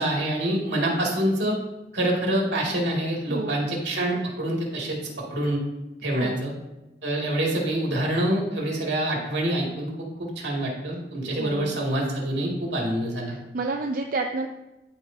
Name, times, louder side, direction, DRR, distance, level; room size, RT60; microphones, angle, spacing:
voice 1, 0.0-1.6 1.9-5.0 5.3-5.6 6.0-6.5 7.0-9.9 10.2-13.4, right 1 dB, 75° right, -2 dB, 2.2 m, -26 dB
voice 2, 3.3-3.6 6.2-6.4 11.4-11.8 13.3-14.5, right 3 dB, 50° right, 2 dB, 0.5 m, -30 dB
13.5 x 4.7 x 2.7 m, 1.0 s
head